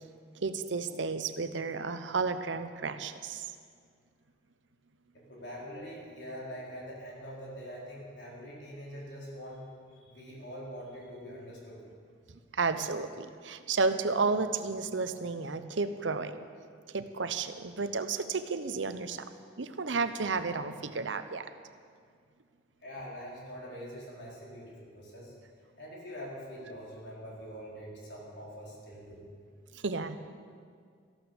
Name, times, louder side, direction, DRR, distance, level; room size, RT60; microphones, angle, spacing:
voice 1, 0.4-3.5 12.5-16.4 16.9-19.3 19.6-21.5 29.8-30.2, right 4 dB, 80° right, 10 dB, 0.8 m, -32 dB
voice 2, 5.1-9.6 9.9-11.8 22.8-25.3 25.8-29.3, equal, 65° left, -4 dB, 4.3 m, -44 dB
14.0 x 12.5 x 7.0 m, 2.1 s
head